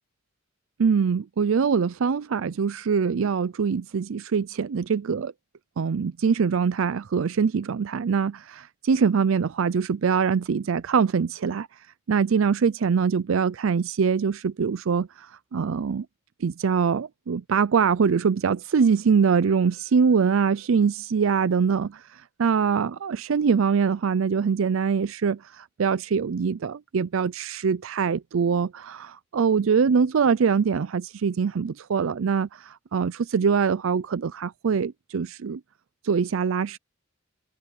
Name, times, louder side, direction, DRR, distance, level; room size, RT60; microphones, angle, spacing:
voice 1, 0.8-5.3 5.8-11.7 12.1-16.1 16.4-35.6 36.0-36.8, right 6 dB, 70° right, 0.4 m, -23 dB
open air
head